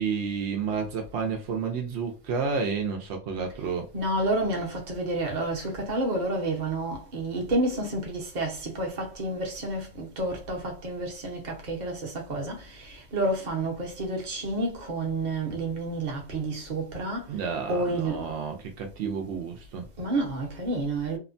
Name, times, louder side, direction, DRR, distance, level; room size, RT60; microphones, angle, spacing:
voice 1, 0.0-3.8 17.3-19.9, right 5 dB, 80° right, 0.8 m, -30 dB
voice 2, 3.9-17.3 17.7-18.3 20.0-21.2, right 2 dB, 45° right, 0.8 m, -30 dB
2.8 x 2.1 x 2.5 m
omnidirectional pair, 1.1 m